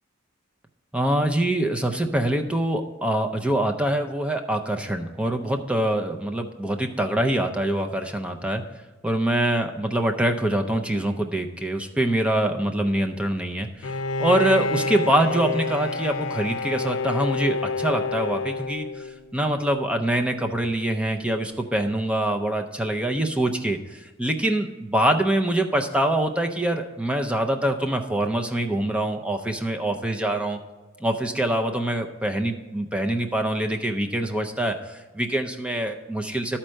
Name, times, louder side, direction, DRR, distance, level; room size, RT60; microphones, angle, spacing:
voice 1, 0.9-8.6 9.0-30.6 31.0-36.6, right 1 dB, 5° right, 5 dB, 0.4 m, -24 dB
Bowed string instrument, 13.8-19.4, left 3 dB, 70° left, 0.6 m, -28 dB
12.5 x 4.4 x 6.3 m, 1.3 s
head